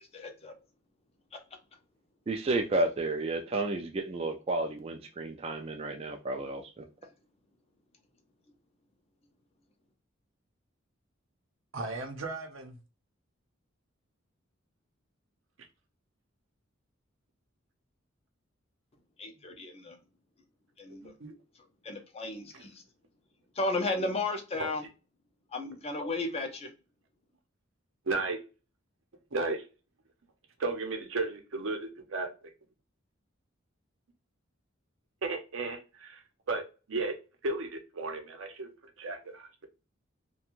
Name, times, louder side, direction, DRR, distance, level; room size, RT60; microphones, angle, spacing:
voice 1, 0.1-0.6 1.3-1.4 19.2-20.0 20.8-21.1 21.8-22.8 23.6-24.8 25.5-26.7, left 2 dB, 30° left, 5 dB, 0.5 m, -34 dB
voice 2, 2.3-6.8, right 2 dB, 30° right, 4 dB, 0.3 m, -31 dB
voice 3, 11.7-12.8 21.0-21.3 22.5-22.7 24.6-24.7 28.0-28.4 29.3-29.7 30.6-32.5 35.2-37.2 37.4-39.6, right 3 dB, 80° right, 4 dB, 0.7 m, -35 dB
2.5 x 2.2 x 2.9 m, 0.31 s
head